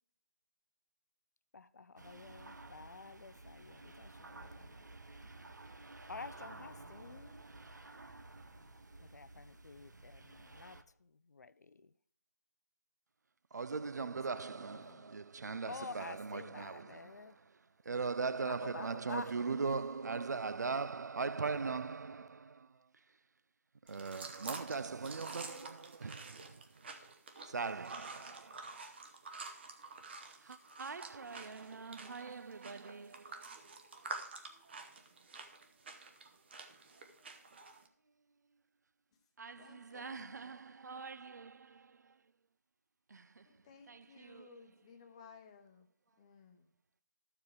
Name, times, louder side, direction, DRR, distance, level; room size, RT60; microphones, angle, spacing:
voice 1, 1.5-4.9 6.1-7.4 9.0-11.9 14.1-15.0 15.7-17.4 18.4-19.3, left 4 dB, 70° left, 0.5 m, -50 dB
sound 1, 2.0-10.8, right 2 dB, 90° right, 0.8 m, -53 dB
voice 2, 13.5-17.5 17.8-23.0 23.8-26.9 27.4-28.9 30.4-33.6 39.4-42.2 43.1-43.5 43.9-44.8, right 4 dB, 70° right, 0.4 m, -41 dB
sound 2, 23.9-37.9, right 3 dB, 35° right, 1.0 m, -49 dB
voice 3, 25.3-25.7 39.6-40.4 43.4-45.9 46.2-46.7, left 5 dB, 20° left, 0.9 m, -58 dB
13.0 x 4.9 x 4.7 m
figure-of-eight pair, 160°, 9 cm